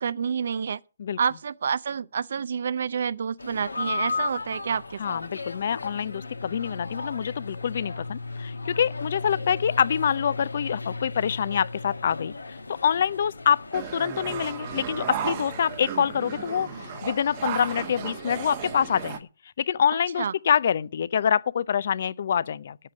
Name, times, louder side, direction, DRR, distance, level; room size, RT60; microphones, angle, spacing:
voice 1, 0.0-0.8 1.2-5.2 20.2-20.3, right 6 dB, 60° right, 0.5 m, -28 dB
sound 1, 3.4-19.2, left 3 dB, 85° left, 1.3 m, -36 dB
voice 2, 5.0-16.7 17.0-19.2 19.6-22.8, left 8 dB, 55° left, 0.5 m, -26 dB
sound 2, 13.7-19.2, right 10 dB, 35° right, 1.0 m, -35 dB
10.5 x 7.6 x 6.2 m
figure-of-eight pair, 135°, 0 cm